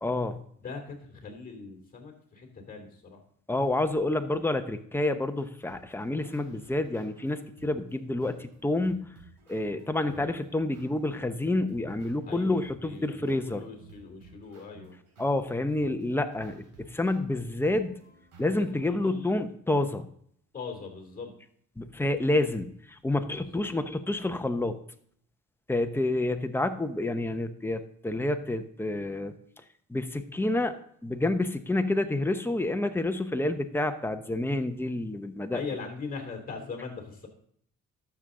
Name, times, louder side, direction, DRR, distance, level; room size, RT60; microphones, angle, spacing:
voice 1, 0.0-0.4 3.5-9.1 9.5-13.6 15.2-18.0 18.4-20.0 21.8-24.8 25.7-29.3 29.9-30.8 31.0-35.6, left 2 dB, 5° left, 7 dB, 0.8 m, -28 dB
voice 2, 0.6-3.2 10.1-10.4 12.2-15.0 18.6-19.4 20.5-21.3 23.4-23.6 35.5-37.3, left 4 dB, 30° left, 4 dB, 2.9 m, -41 dB
sound 1, 5.4-18.9, right 3 dB, 85° right, 3.9 m, -55 dB
12.0 x 6.9 x 3.8 m, 0.65 s
cardioid pair, 90°, 30 cm